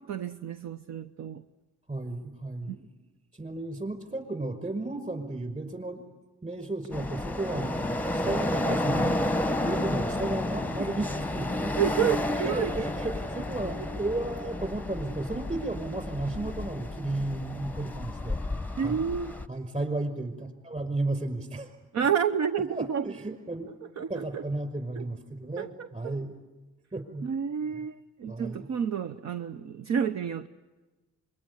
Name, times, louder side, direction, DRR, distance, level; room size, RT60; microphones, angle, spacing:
voice 1, 0.0-1.4 2.7-2.8 11.8-12.7 13.7-13.8 18.8-19.3 21.9-23.1 23.8-24.4 24.9-25.0 25.6-26.2 27.2-30.5, right 8 dB, 65° right, 0.9 m, -30 dB
voice 2, 1.9-2.9 3.3-6.0 6.4-7.8 8.1-9.2 9.6-11.8 12.4-18.4 18.8-19.0 19.5-21.7 22.7-23.7 24.1-26.3 26.9-27.3 28.3-28.7, right 2 dB, 25° right, 5.4 m, -33 dB
sound 1, 6.9-19.5, left 1 dB, 5° left, 0.9 m, -31 dB
25.5 x 22.5 x 9.8 m
cardioid pair, 90°, 30 cm